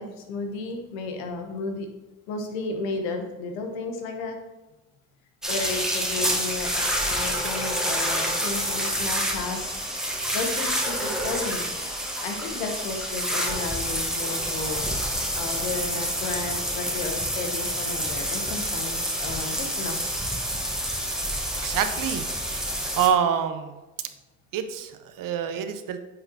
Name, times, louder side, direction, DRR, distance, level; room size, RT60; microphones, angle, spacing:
voice 1, 0.0-1.9 2.3-4.4 5.5-11.7 12.2-14.8 15.3-19.9, left 4 dB, 85° left, 4 dB, 1.0 m, -33 dB
sound 1, 5.4-23.1, equal, ahead, 1.2 m, -28 dB
voice 2, 21.3-23.8 24.5-26.0, right 8 dB, 55° right, 9 dB, 0.7 m, -27 dB
9.4 x 3.9 x 2.8 m, 1.1 s
hypercardioid pair, 65°, 39 cm